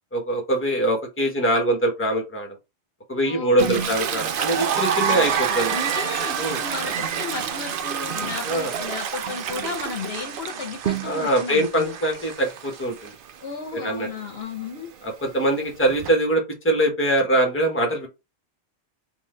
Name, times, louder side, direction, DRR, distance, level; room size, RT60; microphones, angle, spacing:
voice 1, 0.1-2.5 3.1-5.8 6.4-6.6 8.5-8.7 11.0-13.1 13.7-14.1 15.0-18.1, right 1 dB, 10° left, 0.9 m, -23 dB
voice 2, 3.2-3.9 5.0-12.0 13.4-14.9, left 5 dB, 65° left, 1.0 m, -34 dB
Toilet flush, 3.6-11.4 11.8-16.1, right 8 dB, 60° right, 0.6 m, -32 dB
sound 1, 4.0-13.3, right 8 dB, 80° right, 1.0 m, -30 dB
3.8 x 2.5 x 3.1 m
omnidirectional pair, 1.2 m